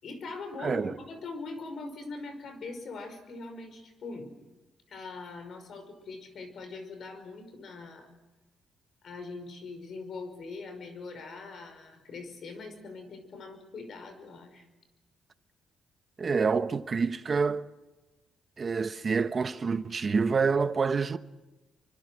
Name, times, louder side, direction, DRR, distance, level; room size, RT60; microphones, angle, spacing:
voice 1, 0.0-4.3 4.9-8.1 9.0-14.6, left 3 dB, 60° left, 5.5 m, -42 dB
voice 2, 0.6-0.9 16.2-17.6 18.6-21.2, right 5 dB, 40° right, 1.1 m, -27 dB
26.5 x 24.5 x 6.4 m
cardioid pair, 90°, 0 cm